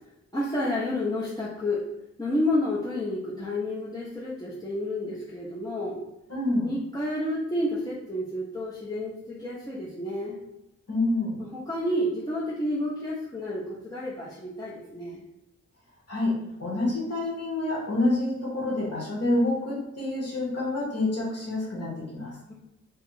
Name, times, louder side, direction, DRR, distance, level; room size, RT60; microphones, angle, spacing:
voice 1, 0.3-1.9 2.2-6.0 6.6-10.4 11.4-15.2 22.5-22.6, left 1 dB, 15° left, -8 dB, 0.5 m, -30 dB
voice 2, 6.3-6.7 10.9-11.4 16.1-22.4, left 2 dB, 55° left, -5 dB, 1.2 m, -27 dB
2.8 x 2.3 x 3.8 m, 0.89 s
wide cardioid pair, 150°, 29 cm